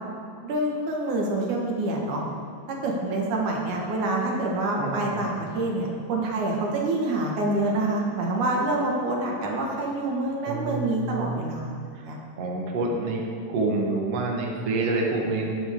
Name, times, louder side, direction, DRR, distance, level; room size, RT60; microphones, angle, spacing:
voice 1, 0.4-2.2 2.7-12.2, right 2 dB, 85° right, -1 dB, 3.2 m, -27 dB
voice 2, 4.7-5.5 10.5-11.5 11.9-12.1 12.4-13.2 13.5-15.5, right 2 dB, 60° right, 0 dB, 2.3 m, -28 dB
20.5 x 9.2 x 3.7 m, 2.4 s
omnidirectional pair, 3.4 m